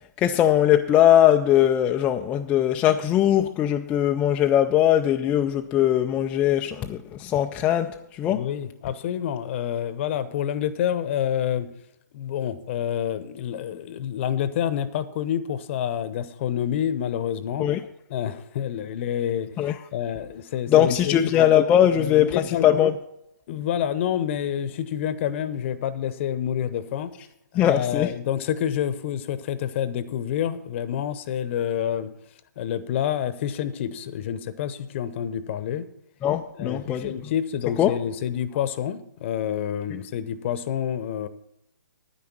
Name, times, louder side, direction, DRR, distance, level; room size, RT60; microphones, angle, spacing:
voice 1, 0.2-8.5 17.6-17.8 19.6-19.8 20.7-22.9 27.6-28.1 36.2-37.1 37.8-38.0, left 11 dB, 15° left, 4 dB, 0.3 m, -20 dB
voice 2, 8.2-11.7 12.1-17.7 18.1-21.3 22.0-22.8 23.5-27.1 27.5-32.1 32.6-35.9 36.6-41.3, left 9 dB, 40° left, 15 dB, 0.8 m, -28 dB
9.7 x 9.6 x 6.0 m, 0.79 s
hypercardioid pair, 140°, 10 cm